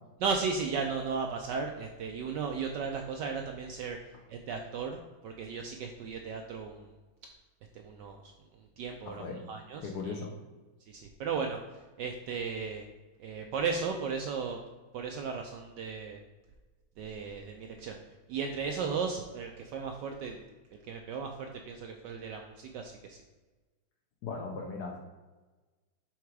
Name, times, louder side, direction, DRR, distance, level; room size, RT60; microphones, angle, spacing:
voice 1, 0.2-4.0 4.3-5.0 5.2-6.9 7.7-8.3 8.8-10.2 10.9-11.6 12.0-12.8 13.2-14.6 14.9-16.2 17.0-18.0 18.3-20.5 20.7-23.2, right 5 dB, 75° right, 3 dB, 1.0 m, -35 dB
voice 2, 9.0-9.4 9.8-10.3 24.2-25.0, left 4 dB, 65° left, 1 dB, 1.0 m, -38 dB
5.8 x 3.6 x 4.6 m, 1.2 s
omnidirectional pair, 2.3 m